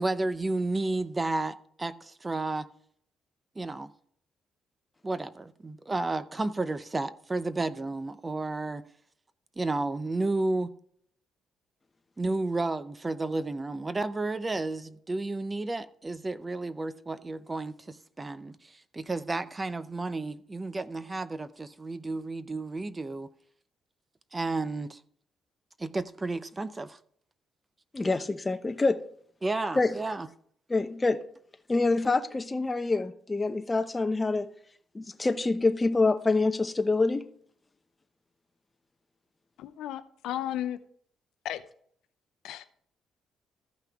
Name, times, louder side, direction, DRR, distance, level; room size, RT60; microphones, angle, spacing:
voice 1, 0.0-2.7 3.6-3.9 5.0-8.8 9.6-10.7 12.2-23.3 24.3-25.0 25.8-27.0 29.4-30.3, right 2 dB, 20° right, 0.6 m, -32 dB
voice 2, 27.9-29.0 29.7-29.9 30.7-31.2 31.7-34.5 34.9-37.2, left 3 dB, 20° left, 0.8 m, -26 dB
voice 3, 39.6-40.8 41.4-41.6 42.4-42.7, left 12 dB, 85° left, 0.6 m, -34 dB
14.5 x 5.7 x 3.5 m
cardioid pair, 90°, 0 cm